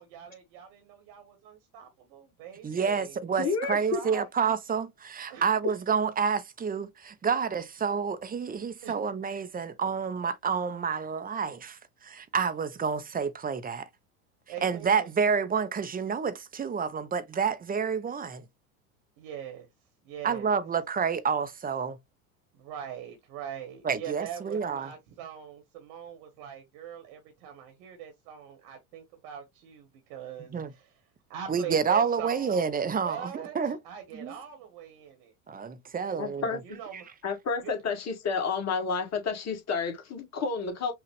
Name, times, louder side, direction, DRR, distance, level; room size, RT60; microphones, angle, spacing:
voice 1, 0.0-3.2 3.4-4.3 5.3-5.4 8.8-8.9 14.5-15.1 19.2-19.7 20.0-20.6 22.5-30.9 31.3-32.6 32.9-35.3 36.0-36.2 36.6-37.2 37.6-37.8, right 9 dB, 60° right, 1.6 m, -42 dB
voice 2, 2.6-13.9 14.6-18.4 20.2-22.0 23.8-24.9 30.5-30.7 31.5-33.8 34.1-34.3 35.5-36.6 36.9-37.0, right 6 dB, 20° right, 0.8 m, -29 dB
voice 3, 3.4-4.0 36.2-36.6 37.2-40.9, left 5 dB, 35° left, 2.0 m, -30 dB
5.9 x 2.4 x 3.2 m
hypercardioid pair, 90°, 45 cm